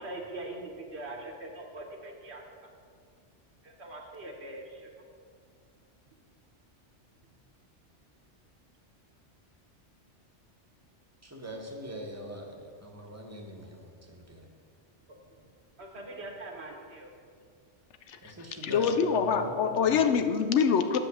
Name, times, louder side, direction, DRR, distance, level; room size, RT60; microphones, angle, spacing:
voice 1, 0.0-2.4 3.6-4.9 15.8-17.1, right 2 dB, 65° right, 1 dB, 1.3 m, -42 dB
voice 2, 11.2-14.5 18.2-20.0, right 1 dB, 15° right, 1 dB, 1.1 m, -41 dB
voice 3, 18.6-21.0, left 6 dB, 75° left, 8 dB, 0.9 m, -25 dB
8.5 x 5.5 x 6.9 m, 2.2 s
omnidirectional pair, 1.2 m